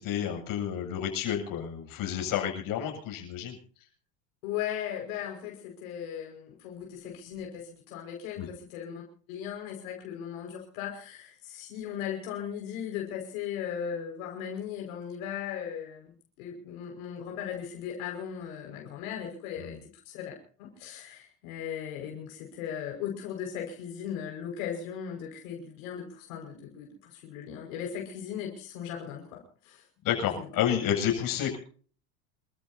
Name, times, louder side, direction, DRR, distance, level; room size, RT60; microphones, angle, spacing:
voice 1, 0.0-3.6 8.4-8.5 19.6-19.8 30.0-31.6, left 9 dB, 55° left, 2 dB, 7.9 m, -30 dB
voice 2, 4.4-9.0 9.3-19.8 20.1-29.8 30.4-30.5, left 9 dB, 80° left, 1 dB, 5.7 m, -37 dB
28.0 x 14.5 x 2.8 m, 0.43 s
supercardioid pair, 120°, 41 cm